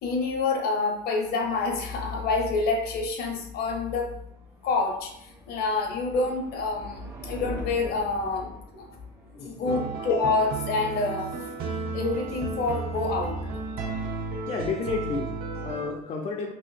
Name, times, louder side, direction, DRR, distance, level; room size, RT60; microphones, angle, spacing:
voice 1, 0.0-4.1 4.6-5.1 5.5-8.9 9.4-11.3 11.9-13.4, left 3 dB, 65° left, 3 dB, 0.7 m, -27 dB
sound 1, 3.0-11.9, right 1 dB, 15° right, 0.6 m, -45 dB
voice 2, 9.3-9.9 14.5-16.5, left 4 dB, 35° left, 1 dB, 0.4 m, -32 dB
sound 2, 9.7-15.9, right 4 dB, 60° right, 0.7 m, -33 dB
2.9 x 2.8 x 4.0 m, 0.78 s
cardioid pair, 165°, 18 cm